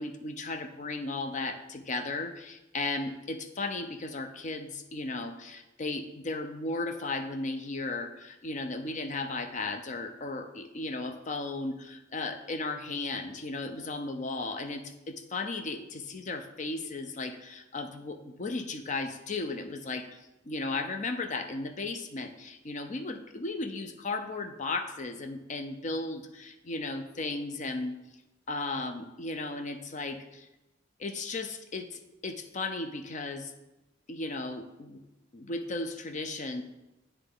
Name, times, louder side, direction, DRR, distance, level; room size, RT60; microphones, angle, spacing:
voice 1, 0.0-20.2 20.4-27.9 28.5-30.5 31.0-33.5 34.1-35.0 35.3-36.6, left 3 dB, 40° left, 7 dB, 0.6 m, -35 dB
9.8 x 3.3 x 3.8 m, 1.0 s
head